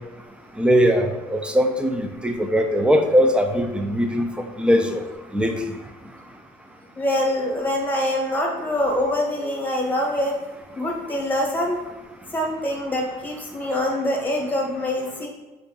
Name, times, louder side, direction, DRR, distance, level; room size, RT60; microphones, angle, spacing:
voice 1, 0.6-4.3 4.6-5.0 5.3-5.6, equal, 5° right, 5 dB, 0.4 m, -20 dB
voice 2, 6.9-10.3 10.7-11.8 12.3-15.3, left 1 dB, 10° left, 0 dB, 1.0 m, -24 dB
4.7 x 2.6 x 3.7 m, 1.1 s
cardioid pair, 110°, 17 cm